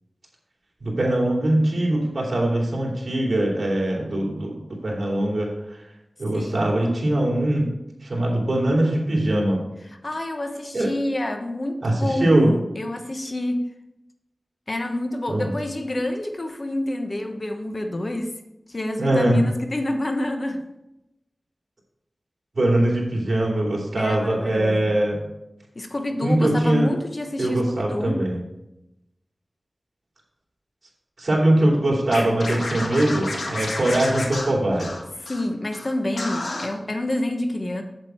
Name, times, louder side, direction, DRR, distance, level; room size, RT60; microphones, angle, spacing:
voice 1, 0.8-4.6 4.8-5.8 6.2-7.7 8.0-9.6 10.7-10.9 11.8-12.5 15.3-15.5 19.0-19.4 22.5-25.2 26.2-26.9 27.4-28.4 31.2-35.0, right 1 dB, 60° right, -2 dB, 3.0 m, -22 dB
voice 2, 6.3-6.8 10.0-13.6 14.7-18.3 18.7-20.6 24.0-24.9 25.7-28.2 35.2-37.8, left 1 dB, 45° left, 5 dB, 1.0 m, -28 dB
Scratching (performance technique), 32.1-35.4 35.7-35.9 36.2-36.7, left 2 dB, 90° left, 1.7 m, -30 dB
8.2 x 7.8 x 4.5 m, 0.90 s
wide cardioid pair, 75°, 0 cm